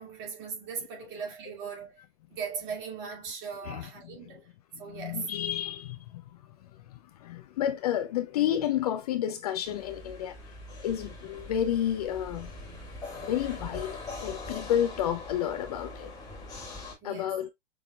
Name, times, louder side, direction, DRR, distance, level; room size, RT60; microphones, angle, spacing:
voice 1, 0.0-2.0 2.3-4.5 4.8-5.2 17.0-17.4, right 6 dB, 35° right, 2.4 m, -39 dB
voice 2, 3.6-4.3 4.7-6.2 6.6-10.5 10.8-12.5 13.2-16.1 17.0-17.5, left 10 dB, 35° left, 0.5 m, -31 dB
sound 1, 9.6-16.9, left 2 dB, 10° left, 1.6 m, -42 dB
6.1 x 3.4 x 2.2 m
hypercardioid pair, 130°, 33 cm